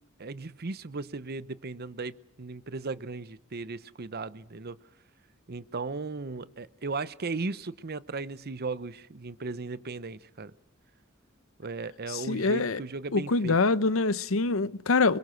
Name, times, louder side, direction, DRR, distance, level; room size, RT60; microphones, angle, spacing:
voice 1, 0.2-4.8 5.5-10.5 11.6-13.6, right 3 dB, 50° right, 0.8 m, -36 dB
voice 2, 12.1-12.8 13.1-15.2, left 3 dB, 70° left, 0.8 m, -25 dB
27.0 x 22.0 x 6.4 m
head